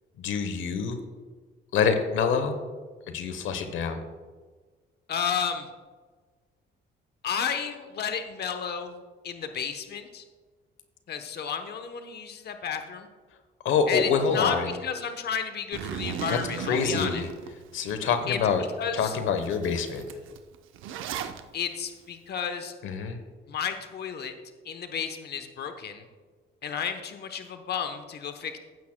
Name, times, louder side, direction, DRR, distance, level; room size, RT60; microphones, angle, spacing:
voice 1, 0.2-1.0 1.7-2.6 3.1-4.0 13.6-14.7 16.3-17.3 17.7-18.6 18.9-20.0 22.8-23.2, left 6 dB, 85° left, 8 dB, 1.0 m, -26 dB
voice 2, 5.1-5.7 7.2-9.0 9.2-10.2 11.1-13.1 13.9-17.2 18.3-18.4 18.8-19.2 21.5-22.7 23.5-24.3 24.6-26.0 26.6-28.6, left 7 dB, 55° left, 7 dB, 1.0 m, -32 dB
Zipper (clothing), 15.7-18.0 18.4-18.5 19.0-19.1 19.4-21.4, right 8 dB, 85° right, 0.7 m, -36 dB
15.5 x 8.5 x 2.2 m, 1.4 s
cardioid pair, 90°, 20 cm